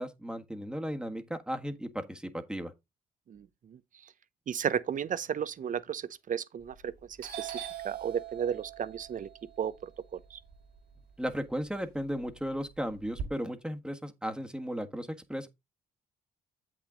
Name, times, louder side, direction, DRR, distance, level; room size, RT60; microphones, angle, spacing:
voice 1, 0.0-2.7 11.2-15.5, equal, 5° right, 1.5 m, -35 dB
voice 2, 3.3-4.1 4.5-6.9 7.2-9.3 9.6-10.4, right 8 dB, 50° right, 0.8 m, -34 dB
Doorbell, 6.6-6.9 7.2-11.3 11.7-13.2, right 9 dB, 75° right, 2.9 m, -42 dB
8.0 x 6.2 x 3.8 m
supercardioid pair, 65°, 17 cm